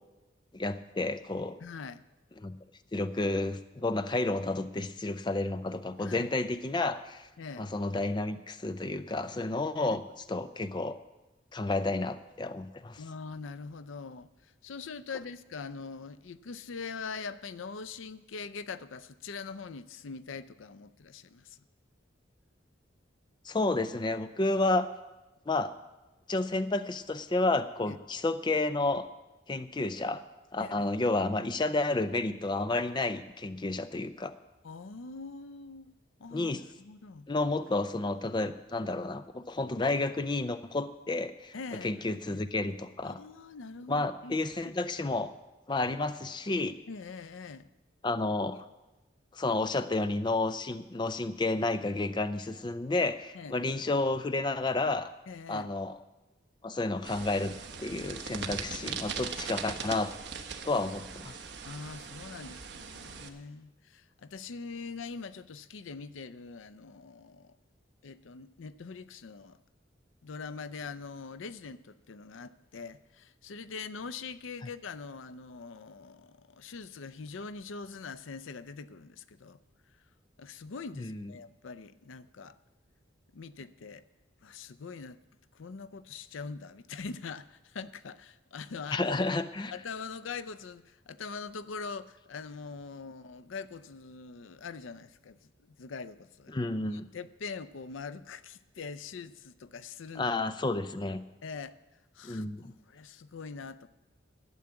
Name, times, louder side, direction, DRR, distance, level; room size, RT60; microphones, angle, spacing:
voice 1, 0.5-1.6 2.4-2.5 2.9-7.3 7.6-11.0 11.5-13.0 23.5-24.9 25.5-25.7 26.3-29.0 29.5-30.2 30.5-34.3 36.3-36.6 37.3-41.6 41.8-43.2 43.9-45.3 45.7-46.7 48.0-48.6 49.3-55.1 55.5-56.0 56.6-57.5 57.8-60.1 60.6-61.3 81.0-81.3 88.9-89.7 96.5-97.1 100.2-101.2 102.2-102.7, left 2 dB, 25° left, 11 dB, 0.4 m, -31 dB
voice 2, 1.6-2.0 6.0-6.3 7.4-7.7 9.7-10.0 13.0-21.6 27.9-28.0 30.6-30.9 34.6-37.3 41.5-42.4 43.0-44.4 44.6-44.7 46.9-47.7 53.3-53.6 55.3-55.7 61.6-67.6 68.0-69.6 70.2-79.6 80.4-82.6 83.3-84.0 84.4-85.2 85.5-89.2 89.7-96.5 96.9-100.3 101.4-101.7 102.1-102.4 102.9-103.9, left 4 dB, 80° left, 14 dB, 0.5 m, -43 dB
sound 1, 57.0-63.3, right 6 dB, 60° right, 1.0 m, -40 dB
12.0 x 7.1 x 8.7 m, 1.1 s
head